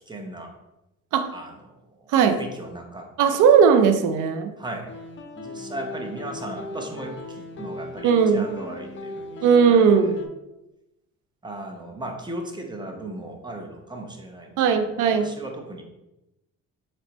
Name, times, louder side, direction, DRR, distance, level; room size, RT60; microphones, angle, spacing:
voice 1, 0.1-0.5 1.3-3.1 4.6-4.9 5.4-10.1 11.4-15.8, right 1 dB, 15° right, 2 dB, 0.8 m, -37 dB
voice 2, 3.2-4.5 8.0-8.5 9.4-10.2 14.6-15.3, right 6 dB, 85° right, 8 dB, 0.5 m, -18 dB
sound 1, 4.9-10.3, left 2 dB, 40° left, 0.6 m, -38 dB
4.2 x 3.1 x 2.9 m, 0.93 s
cardioid pair, 90°, 30 cm